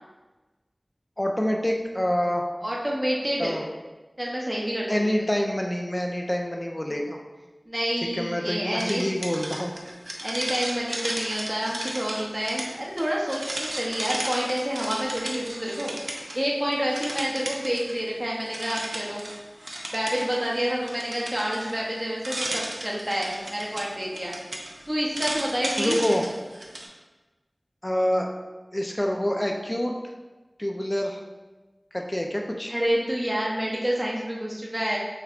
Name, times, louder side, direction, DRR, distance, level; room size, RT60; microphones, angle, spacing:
voice 1, 1.2-2.4 3.4-3.7 4.9-7.2 8.1-9.7 25.8-26.2 27.8-28.3 28.7-29.9 30.6-31.2 31.9-32.7, equal, 25° left, 1 dB, 0.6 m, -26 dB
voice 2, 2.6-3.6 4.2-5.0 7.7-9.1 10.2-16.0 16.3-19.2 19.9-24.3 24.9-26.2 32.7-35.0, equal, 25° right, -4 dB, 0.8 m, -28 dB
sound 1, 8.8-16.5 16.7-18.1 18.4-26.9, right 1 dB, 80° right, 0.6 m, -35 dB
6.5 x 3.0 x 2.5 m, 1.2 s
wide cardioid pair, 40°, 0 cm